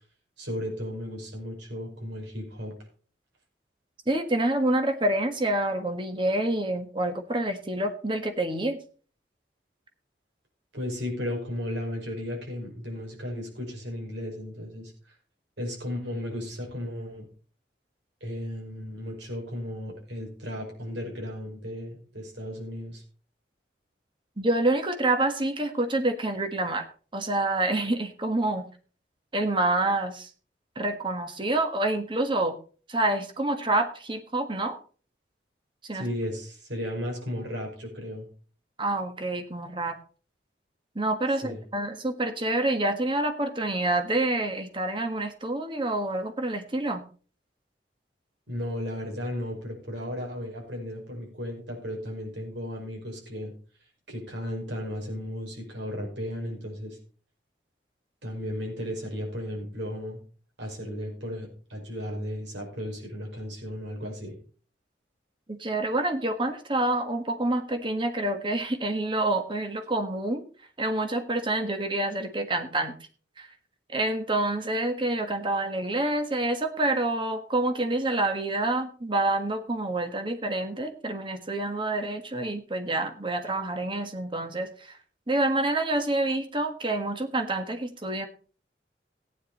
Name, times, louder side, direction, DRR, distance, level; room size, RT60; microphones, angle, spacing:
voice 1, 0.4-2.7 10.7-14.9 15.6-17.3 18.2-23.0 35.9-38.3 41.4-41.6 48.5-53.5 54.1-57.0 58.2-60.2 60.6-64.4, equal, 80° right, 0 dB, 5.8 m, -35 dB
voice 2, 4.1-8.8 24.4-26.9 27.1-28.6 29.3-30.3 30.7-32.5 32.9-34.8 35.8-36.1 38.8-40.0 40.9-47.0 65.5-70.4 70.8-72.9 73.4-73.5 73.9-85.0 85.3-88.3, right 2 dB, 25° right, 7 dB, 1.4 m, -27 dB
15.0 x 9.8 x 4.2 m, 0.40 s
head